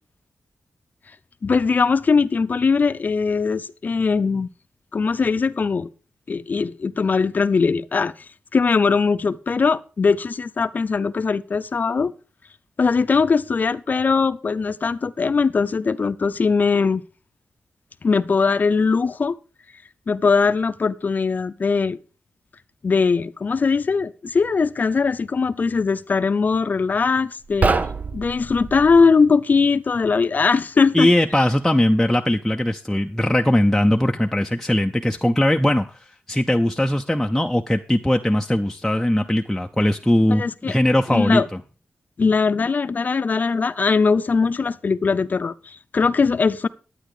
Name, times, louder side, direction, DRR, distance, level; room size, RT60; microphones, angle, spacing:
voice 1, 1.4-4.5 4.9-5.9 6.3-8.1 8.5-12.1 12.8-17.0 18.0-19.4 20.1-22.0 22.8-27.7 28.1-31.1 40.3-40.7 41.1-41.5 42.2-46.7, left 5 dB, 45° left, 0.6 m, -20 dB
sound 1, 27.4-29.1, right 4 dB, 40° right, 0.7 m, -24 dB
voice 2, 30.9-41.4, left 1 dB, 5° left, 0.6 m, -20 dB
11.5 x 9.1 x 4.9 m
wide cardioid pair, 115°, 4 cm